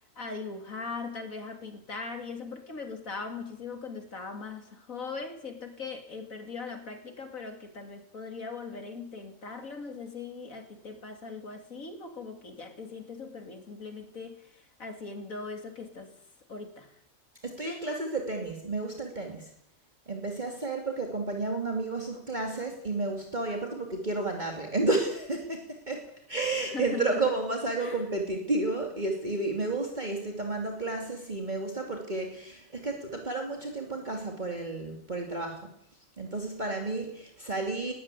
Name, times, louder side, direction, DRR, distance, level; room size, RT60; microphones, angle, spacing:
voice 1, 0.2-16.1 16.5-17.0 26.6-27.1 27.8-28.0, left 4 dB, 90° left, 3.4 m, -40 dB
voice 2, 17.4-19.5 20.1-35.7 36.2-37.9, right 2 dB, 35° right, 2.9 m, -31 dB
20.5 x 15.5 x 10.0 m
omnidirectional pair, 1.4 m